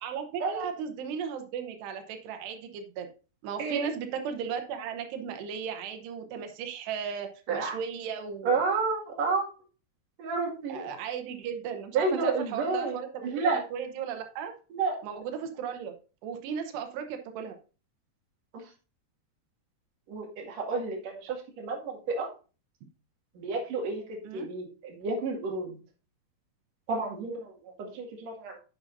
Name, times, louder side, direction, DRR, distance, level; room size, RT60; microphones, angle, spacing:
voice 1, 0.0-3.1 3.4-8.6 10.7-14.5 15.0-15.9 16.2-17.6 24.2-24.5, right 7 dB, 85° right, 6 dB, 3.1 m, -36 dB
voice 2, 8.4-9.4 10.2-10.8 11.9-13.0 13.2-13.6 14.7-15.0 20.1-22.3 23.4-24.0 24.3-25.7 26.9-27.5 27.8-28.6, right 4 dB, 50° right, -1 dB, 2.9 m, -30 dB
9.9 x 8.6 x 2.6 m, 0.35 s
omnidirectional pair, 4.7 m